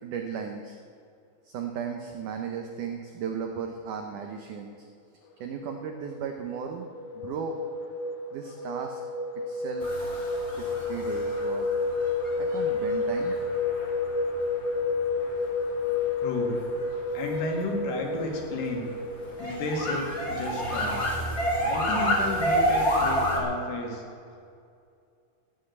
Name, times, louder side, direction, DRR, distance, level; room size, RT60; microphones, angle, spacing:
voice 1, 0.0-0.8 1.4-4.9 5.4-6.9 7.1-7.6 8.3-9.0 9.5-9.9 10.6-11.7 12.4-13.4, right 7 dB, 85° right, 4 dB, 1.7 m, -36 dB
sound 1, 5.5-23.2, left 3 dB, 85° left, 3.2 m, -31 dB
sound 2, 9.8-23.4, equal, 25° left, 1.7 m, -30 dB
voice 2, 16.2-16.6 17.1-18.9 19.4-21.0 21.6-24.0, left 2 dB, 70° left, 1 dB, 4.0 m, -32 dB
14.0 x 8.8 x 7.9 m, 2.4 s
omnidirectional pair, 4.9 m